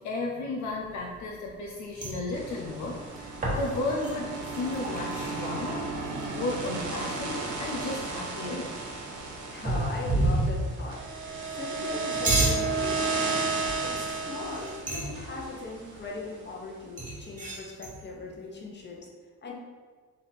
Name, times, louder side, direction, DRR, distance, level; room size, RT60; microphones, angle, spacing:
voice 1, 0.0-5.9 6.3-8.8, left 2 dB, 70° left, -1 dB, 0.6 m, -34 dB
sound 1, 0.8-1.6 1.9-6.8 7.1-7.2 7.4-8.2 9.6-10.8 11.9-12.7 13.6-13.9 14.4-15.2 17.0-18.0, right 2 dB, 25° right, 1.1 m, -30 dB
sound 2, 2.3-16.5, right 3 dB, 85° right, 0.8 m, -34 dB
voice 2, 9.5-13.6 13.8-19.1 19.4-19.5, left 2 dB, 35° left, -1 dB, 0.9 m, -39 dB
3.5 x 2.7 x 4.1 m, 1.5 s
cardioid pair, 90°, 30 cm